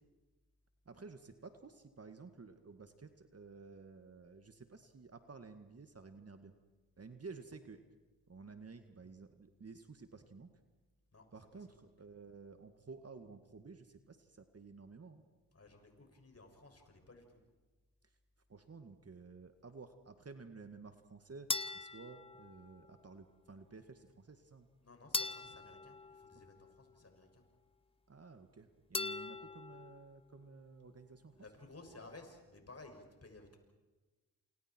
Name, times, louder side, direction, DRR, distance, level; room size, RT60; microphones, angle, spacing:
voice 1, 0.9-6.5 7.0-7.8 8.3-10.5 11.3-15.2 18.5-24.7 28.1-31.4, right 4 dB, 35° right, 7 dB, 2.0 m, -53 dB
voice 2, 15.5-17.4 24.8-27.4 31.4-33.6, left 2 dB, 35° left, 3 dB, 6.8 m, -56 dB
sound 1, 21.5-23.0 25.1-27.0 28.9-30.1, left 3 dB, 15° left, 0.8 m, -41 dB
29.0 x 28.0 x 4.6 m, 1.2 s
hypercardioid pair, 45°, 42 cm